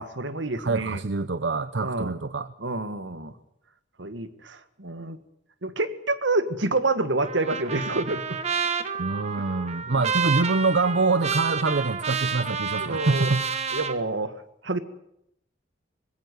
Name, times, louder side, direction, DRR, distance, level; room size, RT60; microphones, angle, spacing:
voice 1, 0.0-1.0 1.8-2.1 2.6-3.3 4.0-5.2 5.6-8.4 9.5-9.6 9.9-10.0 12.8-13.3 13.7-14.3 14.6-14.8, right 2 dB, 90° right, 11 dB, 1.7 m, -28 dB
voice 2, 0.6-2.5 9.0-13.4, right 3 dB, 70° right, 13 dB, 0.8 m, -25 dB
Trumpet, 7.2-14.0, right 6 dB, 35° right, 1.5 m, -29 dB
21.0 x 16.5 x 9.3 m, 0.78 s
head